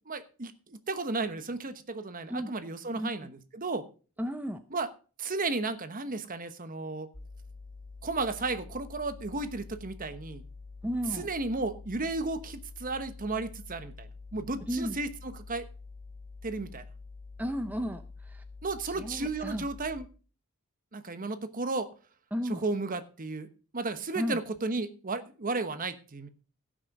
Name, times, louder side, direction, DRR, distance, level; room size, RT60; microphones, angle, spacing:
voice 1, 0.1-0.5 0.9-3.8 4.7-4.9 5.2-7.1 8.0-10.4 11.2-15.7 16.4-16.8 18.6-20.0 20.9-21.9 22.6-23.5 23.7-26.3, right 3 dB, 40° right, 11 dB, 1.1 m, -34 dB
voice 2, 2.9-3.3 4.2-4.6 10.8-11.3 14.6-15.0 17.4-18.4 18.8-19.7 22.3-22.6 24.1-24.4, equal, 10° right, 8 dB, 0.6 m, -34 dB
sound 1, 7.1-20.0, left 3 dB, 40° left, 1.5 m, -47 dB
16.0 x 6.3 x 5.3 m, 0.37 s
head